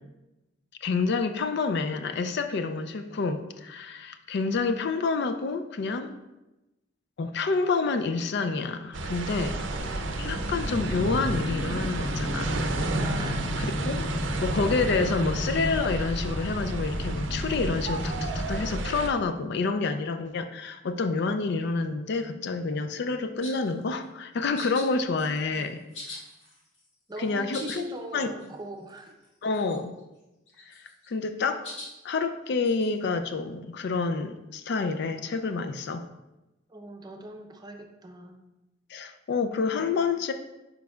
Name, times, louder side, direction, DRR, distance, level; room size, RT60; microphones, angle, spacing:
voice 1, 0.8-6.1 7.2-9.5 9.9-12.6 13.6-14.1 14.4-25.8 27.2-28.3 29.4-29.9 30.7-31.6 32.0-36.0 38.9-40.3, left 4 dB, 60° left, 8 dB, 0.4 m, -28 dB
sound 1, 8.9-19.1, right 2 dB, 70° right, 0.5 m, -32 dB
voice 2, 9.5-10.2 13.0-13.7 24.5-25.2 25.5-25.8 27.1-29.2 36.7-38.4, right 2 dB, 20° right, 3 dB, 0.6 m, -42 dB
sound 2, 9.8-18.9, equal, 45° left, 1.0 m, -33 dB
sound 3, 23.4-23.7 24.6-24.9 25.2-25.6 25.9-26.9 27.3-27.8 28.1-28.2 28.4-28.5 28.9-29.3 29.5-30.0 30.5-31.1 31.6-31.9 32.6-32.9, left 2 dB, 85° left, 1.7 m, -41 dB
9.3 x 5.1 x 2.3 m, 1.0 s
head